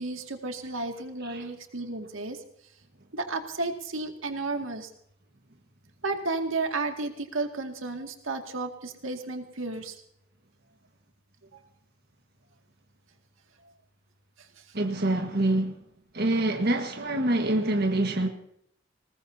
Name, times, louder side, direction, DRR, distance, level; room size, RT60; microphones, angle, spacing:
voice 1, 0.0-2.4 3.1-4.9 6.0-10.0 14.4-14.7, right 3 dB, 90° right, 2.2 m, -33 dB
voice 2, 14.7-15.8 16.1-18.3, right 1 dB, 55° right, 1.6 m, -25 dB
20.5 x 19.5 x 2.8 m
head